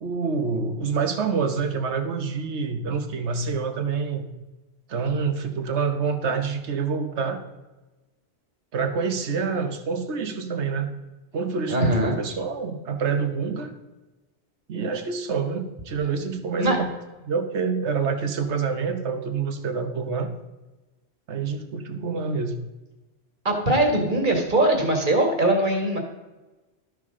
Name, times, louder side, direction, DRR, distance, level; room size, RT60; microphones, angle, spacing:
voice 1, 0.0-4.2 4.9-7.4 8.7-10.9 11.3-13.7 14.7-16.9 17.2-20.3 21.3-22.5, right 5 dB, 75° right, 7 dB, 1.3 m, -27 dB
voice 2, 11.7-12.2 16.6-16.8 23.5-26.0, right 1 dB, 45° right, 1 dB, 2.0 m, -21 dB
13.0 x 6.3 x 3.7 m, 1.1 s
omnidirectional pair, 1.2 m